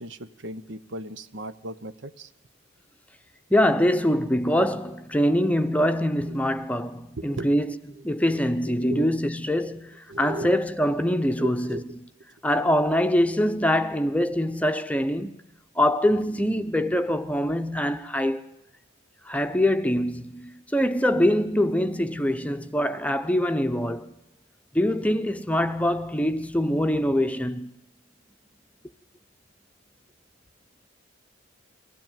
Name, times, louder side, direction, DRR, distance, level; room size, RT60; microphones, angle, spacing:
voice 1, 0.0-2.3 7.2-7.5 8.3-9.2 10.1-10.5 11.4-11.8, right 1 dB, 65° right, 1.0 m, -36 dB
voice 2, 3.5-11.8 12.4-15.4 15.8-18.4 19.3-24.1 24.7-27.7, equal, 5° left, 0.8 m, -24 dB
23.0 x 16.5 x 9.2 m
head